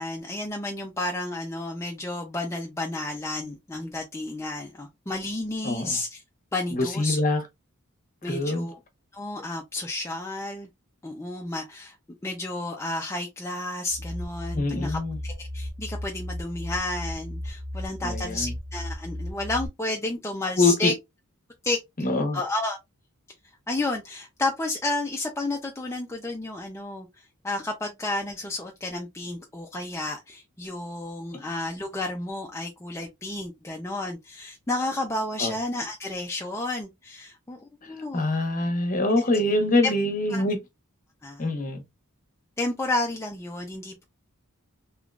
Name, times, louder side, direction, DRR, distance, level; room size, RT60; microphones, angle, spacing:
voice 1, 0.0-6.2 6.5-7.2 8.2-8.8 9.1-10.7 11.0-12.0 12.2-20.9 21.6-21.8 22.3-22.8 23.7-37.6 37.9-38.2 39.2-39.3 39.8-39.9 40.3-40.4 41.2-41.5 42.6-44.0, left 2 dB, 15° left, 0.5 m, -31 dB
voice 2, 5.6-6.0 6.7-7.4 8.3-8.7 14.5-15.2 18.0-18.5 20.6-20.9 22.0-22.4 35.4-35.5 38.1-40.6 41.4-41.8, left 2 dB, 40° left, 1.0 m, -24 dB
sound 1, 13.9-19.7, left 1 dB, 35° right, 1.6 m, -35 dB
3.7 x 2.9 x 2.3 m
head